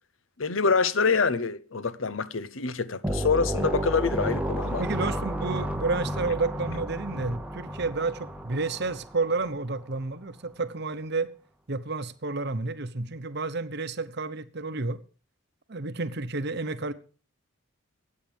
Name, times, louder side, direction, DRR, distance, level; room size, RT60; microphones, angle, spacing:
voice 1, 0.4-4.8, left 4 dB, 65° left, 0.8 m, -26 dB
sound 1, 3.0-9.5, equal, 5° right, 0.8 m, -32 dB
voice 2, 4.8-11.3 11.7-15.0 15.7-16.9, right 3 dB, 50° right, 0.9 m, -30 dB
24.0 x 8.7 x 3.5 m
head